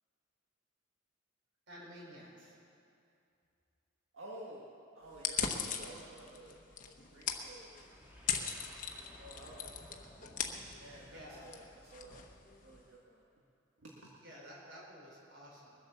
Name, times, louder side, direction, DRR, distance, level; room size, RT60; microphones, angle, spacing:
voice 1, 1.7-2.6 11.0-11.6 14.2-15.8, equal, 65° right, -3 dB, 4.3 m, -52 dB
voice 2, 4.1-4.7 4.9-7.9 8.2-10.1 10.8-11.6 11.9-12.2 12.6-13.2 13.8-14.1, right 1 dB, 85° right, -4 dB, 1.7 m, -53 dB
sound 1, 5.1-12.9, left 7 dB, 40° left, 1.1 m, -40 dB
sound 2, 7.7-12.6, equal, 10° right, 1.7 m, -58 dB
22.0 x 8.0 x 6.9 m, 2.6 s
head